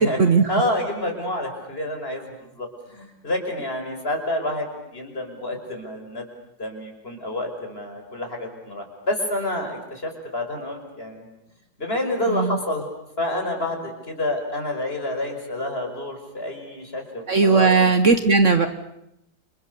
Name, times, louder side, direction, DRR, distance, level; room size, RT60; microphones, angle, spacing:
voice 1, 0.5-6.2 6.6-11.3 11.8-12.9 13.2-17.9, left 1 dB, 35° left, 3 dB, 5.8 m, -28 dB
voice 2, 17.3-18.7, right 4 dB, 50° right, 9 dB, 1.4 m, -17 dB
29.5 x 27.5 x 6.9 m, 0.83 s
omnidirectional pair, 1.8 m